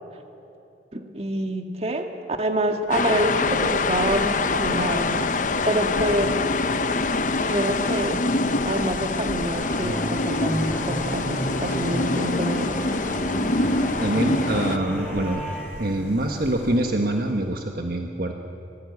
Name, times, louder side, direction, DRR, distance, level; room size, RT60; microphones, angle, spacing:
voice 1, 0.9-2.1 2.4-5.3 5.7-6.3 7.4-8.2 8.7-12.7, right 1 dB, 35° right, 5 dB, 1.9 m, -26 dB
sound 1, 2.8-17.5, left 1 dB, 75° left, 3.8 m, -41 dB
sound 2, 2.9-14.8, left 3 dB, 45° left, 0.9 m, -25 dB
sound 3, 9.5-15.6, equal, 5° left, 7.2 m, -32 dB
voice 2, 14.0-15.4 15.8-18.3, right 1 dB, 55° right, 4 dB, 1.4 m, -25 dB
25.5 x 19.0 x 9.6 m, 2.7 s
head